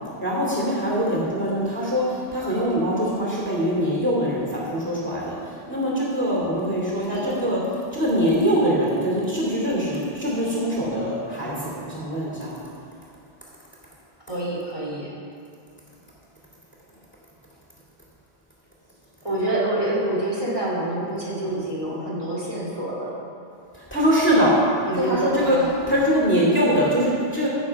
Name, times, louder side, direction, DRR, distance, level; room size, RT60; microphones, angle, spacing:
voice 1, 0.2-7.6 7.9-12.5 23.7-24.6 24.9-25.6 25.9-27.5, equal, 10° left, -5 dB, 2.6 m, -23 dB
voice 2, 7.1-7.4 14.3-15.1 19.2-23.1 24.9-25.7, right 1 dB, 30° right, -7 dB, 2.3 m, -27 dB
16.0 x 7.1 x 4.8 m, 2.4 s
omnidirectional pair, 1.0 m